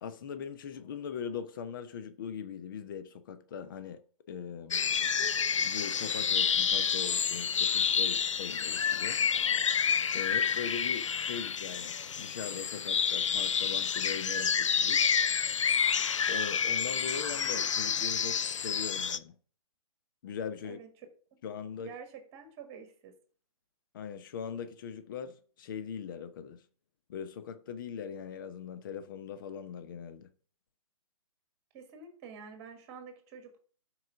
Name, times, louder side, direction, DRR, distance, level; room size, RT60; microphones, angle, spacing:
voice 1, 0.0-4.0 4.3-4.8 5.6-9.2 10.1-15.1 16.3-19.3 20.2-20.8 21.4-21.9 23.9-26.6 27.1-30.3, left 7 dB, 35° left, 0.8 m, -40 dB
sound 1, 4.7-19.2, left 7 dB, 55° left, 0.5 m, -29 dB
voice 2, 21.8-23.1 31.7-33.6, right 6 dB, 25° right, 1.7 m, -48 dB
12.0 x 4.9 x 3.7 m
figure-of-eight pair, 130°, 19 cm